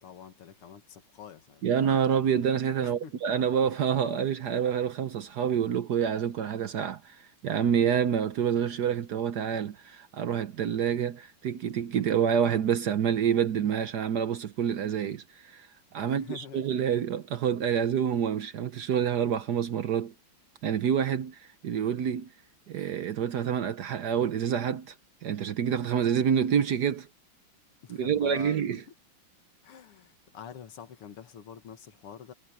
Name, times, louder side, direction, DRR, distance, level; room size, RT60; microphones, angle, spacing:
voice 1, 0.0-1.6 2.8-3.1 16.0-16.7 27.8-28.6 28.9-29.0 29.6-32.3, left 8 dB, 85° left, 2.5 m, -46 dB
voice 2, 1.6-20.1 20.6-22.3 22.7-24.9 25.2-27.1 28.0-28.8, right 8 dB, 60° right, 1.2 m, -27 dB
omnidirectional pair, 2.4 m